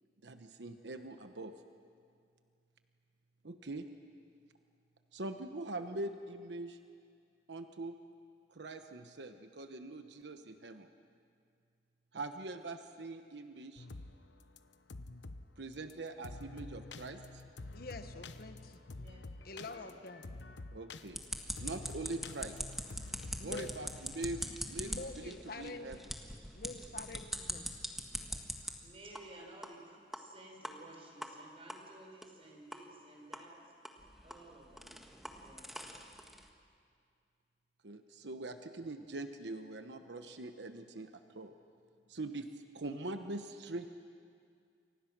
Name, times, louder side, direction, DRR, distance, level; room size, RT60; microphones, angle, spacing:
voice 1, 0.2-1.6 3.4-3.9 5.1-6.8 7.5-8.0 8.5-10.9 12.1-13.9 15.6-17.4 20.7-21.2 21.6-22.6 23.4-26.0 37.8-41.1 41.3-41.5 42.1-43.9, right 2 dB, 75° right, 7 dB, 1.1 m, -43 dB
sound 1, 13.8-14.1 14.4-15.5 15.9-16.0 16.2-24.6, left 2 dB, 85° left, 0.9 m, -48 dB
voice 2, 17.7-18.8 19.4-20.3 23.4-23.9 24.8-26.0 26.5-27.6, left 3 dB, 60° left, 8 dB, 1.3 m, -46 dB
voice 3, 19.5-20.0 25.2-25.4 28.6-33.7 34.2-35.0 35.4-35.9, right 1 dB, 35° right, 1 dB, 4.9 m, -55 dB
sound 2, 21.1-28.7 29.1-29.2 29.6-29.7 30.1-30.2 30.6-30.7 31.2-31.3 31.7-31.8 32.2-32.3 32.7-32.8 33.3-33.4 33.8-36.5, equal, ahead, 1.6 m, -43 dB
29.0 x 24.5 x 6.1 m, 2.3 s
head